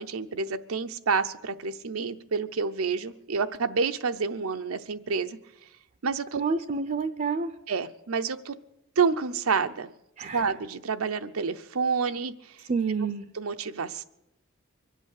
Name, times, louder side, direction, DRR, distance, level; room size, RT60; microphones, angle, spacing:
voice 1, 0.0-5.4 6.0-6.4 7.7-8.5 9.0-9.9 10.3-12.3 13.3-14.0, right 5 dB, 90° right, 9 dB, 0.7 m, -28 dB
voice 2, 6.4-7.5 10.2-10.5 12.7-13.2, right 4 dB, 40° right, 9 dB, 0.5 m, -28 dB
23.5 x 8.3 x 6.5 m, 0.86 s
head